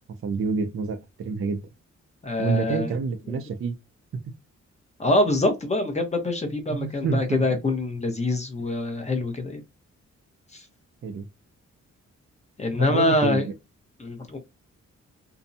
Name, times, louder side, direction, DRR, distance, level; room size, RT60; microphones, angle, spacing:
voice 1, 0.2-1.7 2.4-3.7 4.1-4.2 6.7-7.5 11.0-11.3 12.8-13.5, right 5 dB, 45° right, 0.5 m, -28 dB
voice 2, 2.2-2.9 5.0-9.6 10.5-10.6 12.6-13.4 14.0-14.4, left 2 dB, 25° left, 0.9 m, -25 dB
2.6 x 2.2 x 2.6 m
cardioid pair, 105°, 29 cm